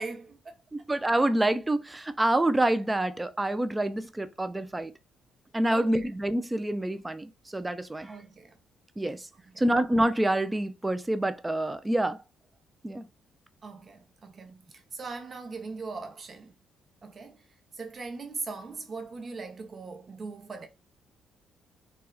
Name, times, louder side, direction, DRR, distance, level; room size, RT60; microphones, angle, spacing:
voice 1, 0.0-0.5 5.7-6.1 8.1-8.5 9.3-9.6 13.6-16.5 17.0-17.4 17.7-20.7, right 4 dB, 40° right, 0.8 m, -40 dB
voice 2, 0.7-4.9 5.5-8.1 9.0-9.2 9.6-12.2 12.8-13.0, right 1 dB, 15° right, 0.4 m, -27 dB
4.2 x 2.3 x 2.3 m
cardioid pair, 90°, 0 cm